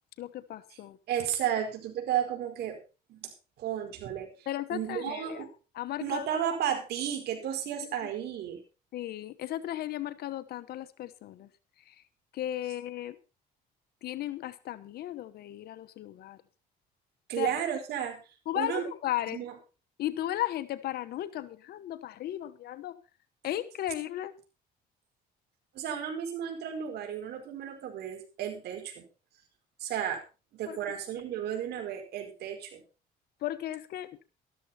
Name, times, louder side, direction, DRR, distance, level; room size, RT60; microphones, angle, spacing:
voice 1, 0.2-1.0 4.5-5.5 5.7-6.3 8.0-8.1 8.9-11.5 11.9-12.0 12.3-13.2 14.0-16.4 17.4-17.5 18.5-19.4 20.0-23.0 23.4-24.3 30.7-30.8 33.4-34.1, left 13 dB, 70° left, 13 dB, 1.2 m, -35 dB
voice 2, 1.1-2.8 3.1-3.3 3.6-5.5 6.0-8.6 17.3-18.2 18.5-18.8 19.3-19.5 25.7-29.1 29.8-30.2 30.5-32.8, right 9 dB, 75° right, 4 dB, 4.8 m, -33 dB
13.5 x 13.0 x 4.3 m, 0.32 s
cardioid pair, 110°, 17 cm